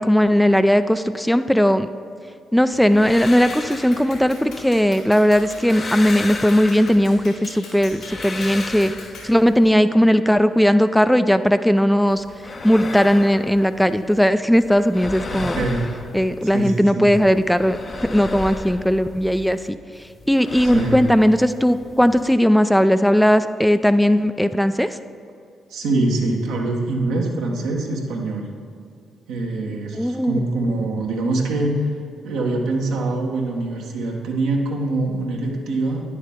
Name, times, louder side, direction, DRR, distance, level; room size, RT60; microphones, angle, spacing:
voice 1, 0.0-1.9 2.5-8.9 9.2-12.2 12.6-15.6 16.1-19.8 20.3-25.0 30.0-30.3, equal, 5° left, 11 dB, 0.4 m, -17 dB
sound 1, 2.7-4.9 5.3-7.4 7.8-9.7 12.1-14.3 14.5-16.8 17.1-19.7 19.9-22.3, left 3 dB, 45° left, 0.7 m, -35 dB
Clapping, 3.3-9.4, left 2 dB, 80° left, 2.0 m, -41 dB
voice 2, 15.3-15.9 16.4-17.1 20.6-21.0 25.7-28.5 29.3-31.9 32.2-36.0, right 2 dB, 75° right, 0 dB, 1.1 m, -24 dB
9.8 x 6.6 x 3.6 m, 2.4 s
hypercardioid pair, 45°, 0 cm